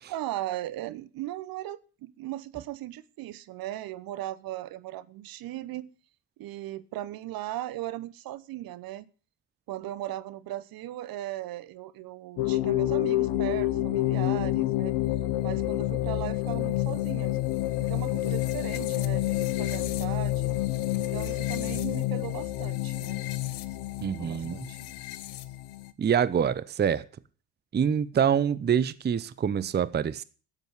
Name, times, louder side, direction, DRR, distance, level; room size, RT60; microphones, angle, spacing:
voice 1, 0.1-5.9 6.4-9.1 9.7-15.0 15.4-17.4 17.8-20.5 21.0-23.2 24.1-24.9, right 14 dB, 50° right, 0.9 m, -38 dB
sound 1, 12.4-25.9, left 15 dB, 65° left, 1.1 m, -28 dB
voice 2, 24.0-24.6 26.0-27.1 27.7-30.2, right 8 dB, 25° right, 0.7 m, -26 dB
12.0 x 8.1 x 7.9 m
hypercardioid pair, 60°, 44 cm